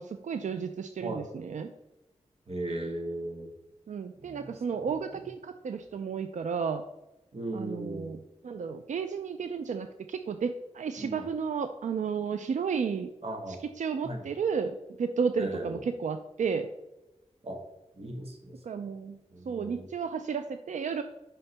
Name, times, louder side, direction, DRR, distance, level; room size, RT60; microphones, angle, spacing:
voice 1, 0.0-1.7 3.9-6.8 7.5-8.2 8.4-13.1 13.8-16.7 18.6-19.2 19.5-21.0, right 6 dB, 90° right, 8 dB, 0.4 m, -32 dB
voice 2, 2.5-3.5 4.2-5.2 7.3-8.1 11.0-11.3 13.2-13.6 14.0-14.3 15.4-15.8 17.4-17.6 17.9-18.6 19.3-19.9, right 1 dB, 55° right, 1 dB, 1.6 m, -37 dB
6.9 x 5.8 x 3.3 m, 0.96 s
wide cardioid pair, 75°, 12 cm